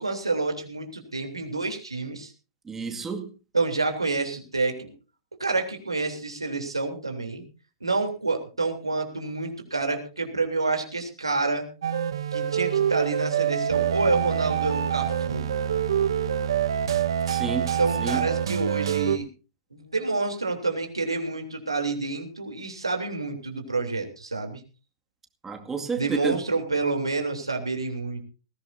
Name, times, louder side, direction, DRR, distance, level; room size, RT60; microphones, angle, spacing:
voice 1, 0.0-2.3 3.5-4.9 5.4-7.4 7.8-11.7 12.3-15.5 17.7-19.3 19.7-24.6 25.9-28.2, right 3 dB, 90° right, 3.3 m, -28 dB
voice 2, 2.7-3.3 17.3-17.7 18.0-18.2 25.4-26.4, right 5 dB, 15° right, 2.1 m, -30 dB
sound 1, 11.8-19.2, right 9 dB, 65° right, 1.3 m, -26 dB
20.0 x 16.0 x 2.7 m
figure-of-eight pair, 110°, 3 cm